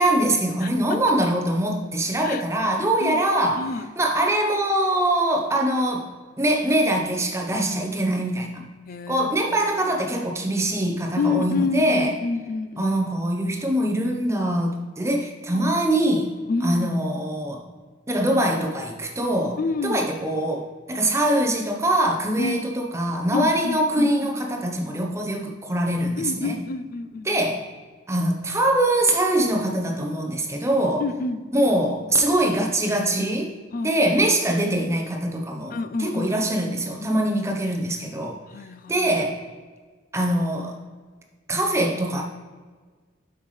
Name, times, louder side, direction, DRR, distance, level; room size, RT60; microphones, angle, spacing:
voice 1, 0.0-3.7 4.0-6.0 6.4-8.6 9.1-12.2 12.8-16.3 16.6-17.6 18.1-26.6 27.2-27.7 28.1-31.1 31.5-33.5 33.8-35.7 36.0-38.4 38.9-39.4 40.1-40.7 41.5-42.2, right 1 dB, 15° right, 1 dB, 0.8 m, -23 dB
voice 2, 0.6-1.0 2.2-2.4 3.0-3.2 3.6-3.9 8.9-9.6 11.2-12.9 15.5-15.8 16.5-16.9 19.6-20.0 22.4-22.6 23.3-24.3 26.2-27.3 31.0-31.4 33.7-33.9 35.7-36.5 36.9-37.2 38.5-39.1, left 3 dB, 45° left, 11 dB, 0.4 m, -28 dB
7.7 x 5.7 x 3.2 m, 1.4 s
head